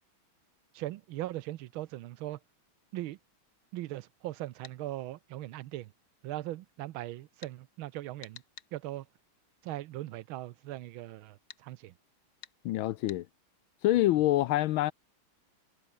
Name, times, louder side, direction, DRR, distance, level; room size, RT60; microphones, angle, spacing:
voice 1, 0.7-2.4 2.9-3.2 3.7-5.9 6.2-8.4 8.7-9.1 9.6-11.9, right 15 dB, 80° right, 1.5 m, -39 dB
sound 1, 4.6-4.8 7.4-7.6 8.2-8.7 11.5-11.6 12.4-12.6 13.1-13.2, left 9 dB, 55° left, 1.4 m, -49 dB
voice 2, 12.6-13.3 13.8-14.9, left 15 dB, 75° left, 1.4 m, -26 dB
omnidirectional pair, 2.3 m